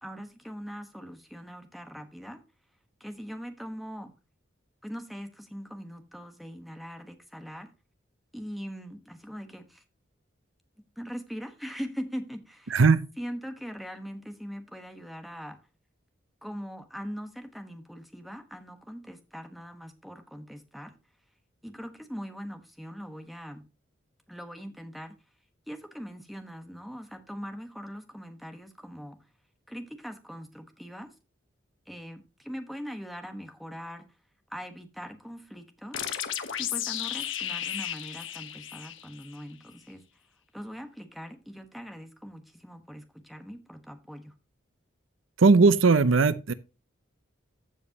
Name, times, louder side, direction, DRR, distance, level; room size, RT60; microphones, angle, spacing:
voice 1, 0.0-2.4 3.0-4.1 4.8-7.7 8.3-9.8 11.0-12.8 13.2-15.6 16.4-20.9 21.6-23.6 24.3-25.2 25.7-29.2 29.7-31.1 31.9-34.1 34.5-36.1 36.6-40.0 40.5-44.3, equal, ahead, 1.2 m, -41 dB
voice 2, 12.7-13.1 45.4-46.5, right 4 dB, 80° right, 0.7 m, -19 dB
sound 1, 35.9-39.4, left 10 dB, 75° left, 1.2 m, -34 dB
15.0 x 5.2 x 2.9 m
head